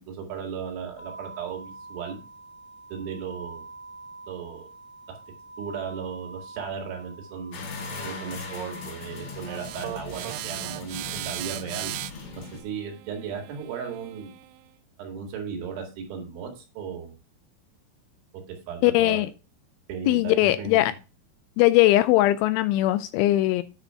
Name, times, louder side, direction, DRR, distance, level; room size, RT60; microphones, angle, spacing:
voice 1, 0.0-2.2 2.9-3.7 4.3-4.7 5.1-5.2 5.6-7.7 8.0-11.9 12.4-14.4 15.0-17.1 18.3-19.3 19.9-20.8, right 6 dB, 70° right, 4.0 m, -36 dB
sound 1, 1.0-10.0, right 3 dB, 45° left, 1.7 m, -45 dB
sound 2, 7.5-12.6, left 5 dB, 70° left, 5.4 m, -39 dB
sound 3, 9.5-14.6, right 18 dB, 85° right, 2.7 m, -37 dB
voice 2, 18.8-19.3 20.1-20.9 21.6-23.6, left 16 dB, 90° left, 2.7 m, -20 dB
9.8 x 4.3 x 5.4 m
omnidirectional pair, 5.9 m